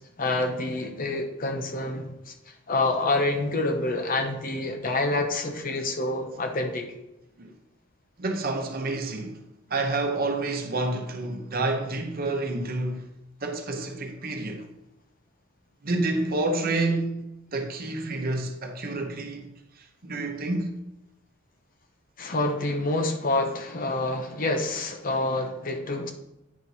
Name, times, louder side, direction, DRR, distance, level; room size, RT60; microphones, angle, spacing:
voice 1, 0.0-2.3 2.7-6.9 22.2-26.1, left 2 dB, 45° left, 0.9 m, -27 dB
voice 2, 8.2-9.4 9.7-13.1 13.4-14.7 15.8-17.2 17.5-20.8, right 2 dB, 45° right, 0.9 m, -29 dB
9.3 x 4.5 x 4.1 m
head